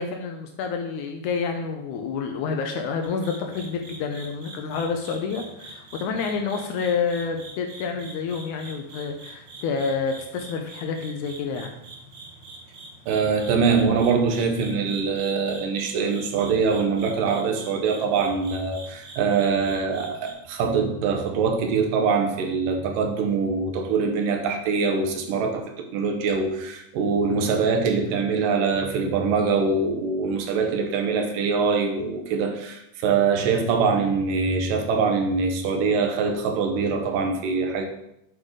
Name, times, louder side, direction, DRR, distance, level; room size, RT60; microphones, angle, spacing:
voice 1, 0.0-11.7, left 5 dB, 80° left, 4 dB, 1.9 m, -28 dB
sound 1, 3.0-20.3, right 2 dB, 60° right, 1.2 m, -44 dB
voice 2, 13.1-37.9, right 5 dB, 80° right, 4 dB, 2.5 m, -23 dB
8.5 x 4.9 x 3.7 m, 0.79 s
omnidirectional pair, 3.9 m